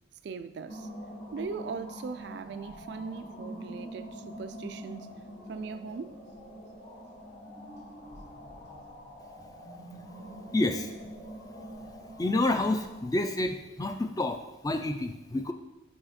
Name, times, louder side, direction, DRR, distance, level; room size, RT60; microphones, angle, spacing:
voice 1, 0.2-0.9 1.3-5.1 5.5-6.2, right 5 dB, 55° right, 0.3 m, -39 dB
sound 1, 0.7-13.1, equal, 55° left, 2.4 m, -44 dB
voice 2, 10.5-10.9 12.2-15.5, left 2 dB, 20° left, 0.4 m, -29 dB
5.8 x 5.6 x 4.2 m
head